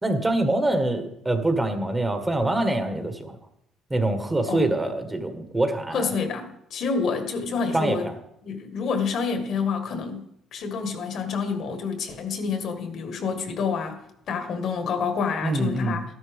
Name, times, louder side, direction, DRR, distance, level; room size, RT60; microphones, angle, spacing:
voice 1, 0.0-3.4 3.9-6.1 7.7-8.0 15.4-16.0, right 2 dB, 15° right, 7 dB, 1.5 m, -24 dB
voice 2, 5.9-8.1 8.4-10.2 10.5-14.0 14.3-16.0, left 5 dB, 60° left, 7 dB, 1.6 m, -28 dB
12.5 x 11.0 x 3.5 m, 0.77 s
supercardioid pair, 80°, 0 cm